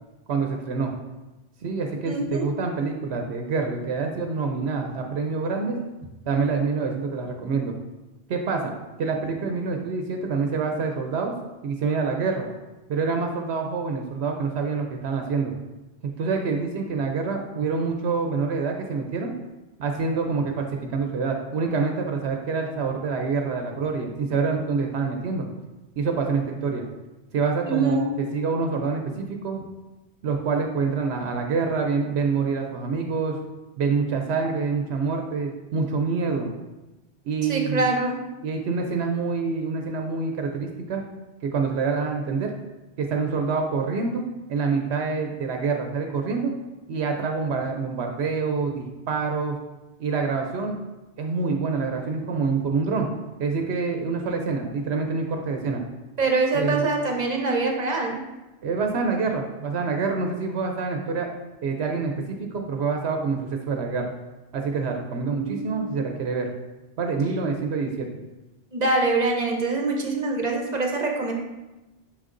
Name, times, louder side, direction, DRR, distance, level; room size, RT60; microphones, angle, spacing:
voice 1, 0.3-0.9 1.6-5.8 6.3-7.7 8.3-8.7 9.0-11.3 11.6-12.5 12.9-15.5 16.0-19.3 19.8-25.5 26.0-26.8 27.3-29.6 30.2-33.4 33.8-36.5 37.2-37.9 38.4-41.0 41.4-42.5 43.0-44.2 44.5-46.5 46.9-49.6 50.0-50.8 51.2-53.1 53.4-55.8 56.5-56.9 58.6-61.3 61.6-64.1 64.5-66.5 67.0-68.1, right 4 dB, 75° right, 3 dB, 0.9 m, -26 dB
voice 2, 2.1-2.5 27.7-28.0 37.5-38.2 56.2-58.2 65.3-65.9 68.7-71.3, right 3 dB, 40° right, 1 dB, 0.9 m, -24 dB
6.3 x 6.0 x 2.5 m, 1.1 s
omnidirectional pair, 1.1 m